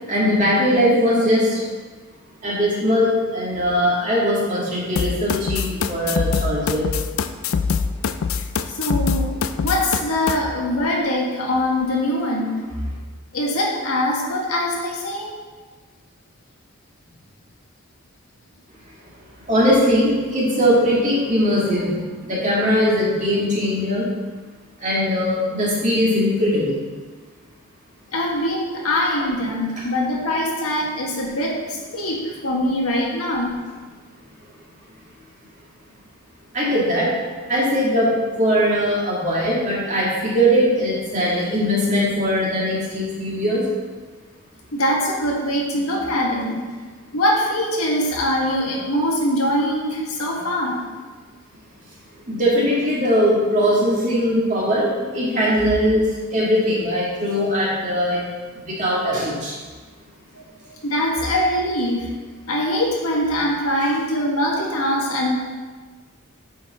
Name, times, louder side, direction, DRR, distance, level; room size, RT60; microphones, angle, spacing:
voice 1, 0.1-1.6 2.4-6.9 19.5-21.9 22.3-24.0 24.8-26.8 36.5-37.1 37.5-43.6 45.7-45.8 52.3-56.0 56.3-58.2 58.6-59.5, equal, 35° right, -6 dB, 2.1 m, -20 dB
sound 1, 5.0-10.4, left 6 dB, 70° left, 0.4 m, -23 dB
voice 2, 8.7-9.3 9.6-12.6 13.3-15.3 28.1-33.6 44.7-46.6 47.1-50.8 60.8-62.1 62.5-65.3, left 1 dB, 90° left, -2 dB, 1.6 m, -22 dB
9.0 x 4.9 x 3.6 m, 1.4 s
head